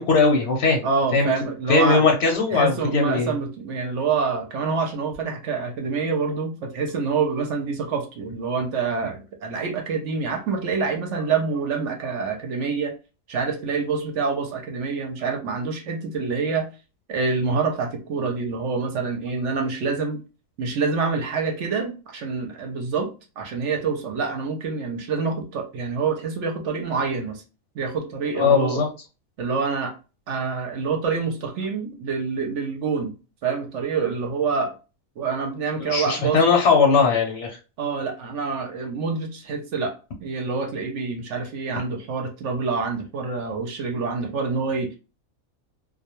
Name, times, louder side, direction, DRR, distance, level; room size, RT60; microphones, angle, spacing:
voice 1, 0.0-0.9 1.1-1.3 1.7-3.3 9.0-9.1 28.4-28.9 35.8-37.6, left 4 dB, 60° left, 1 dB, 0.8 m, -19 dB
voice 2, 0.8-2.0 2.5-12.9 13.3-16.7 17.1-20.2 20.6-23.1 23.4-27.4 27.8-28.8 29.4-29.9 30.3-33.2 33.4-34.7 35.2-36.4 37.8-39.9 40.2-45.0, right 5 dB, 65° right, 3 dB, 0.9 m, -26 dB
2.3 x 2.2 x 2.9 m, 0.31 s
omnidirectional pair, 1.4 m